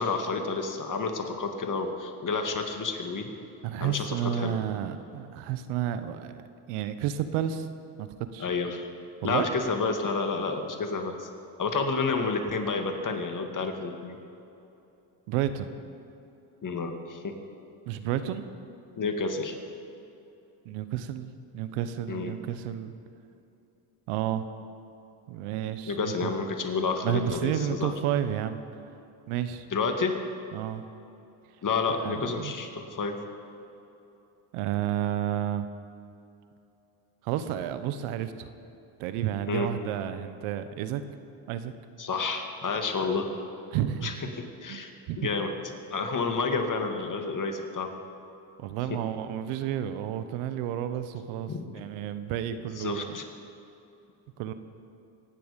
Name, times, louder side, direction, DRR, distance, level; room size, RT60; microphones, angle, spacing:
voice 1, 0.0-3.3 3.8-4.6 8.4-8.9 9.2-11.3 11.6-14.2 16.6-17.4 19.0-19.6 22.1-22.3 25.9-27.9 29.7-30.2 31.6-33.2 39.4-39.7 42.0-43.3 44.0-44.9 45.2-45.5 45.9-47.9 48.9-49.0 51.5-51.6 52.8-53.2, left 4 dB, 40° left, 5 dB, 2.2 m, -30 dB
voice 2, 3.6-7.7 8.0-8.5 9.2-9.5 15.3-15.7 17.9-18.5 20.6-22.9 24.1-24.5 25.3-26.3 27.0-28.6 29.3-29.7 30.5-30.8 31.9-32.5 34.5-35.7 37.2-38.5 39.0-41.0 41.5-41.7 43.7-44.1 44.7-45.2 48.6-53.2 54.4-54.5, right 10 dB, 85° right, 11 dB, 1.0 m, -31 dB
24.5 x 9.4 x 5.2 m, 2.8 s
supercardioid pair, 75°, 49 cm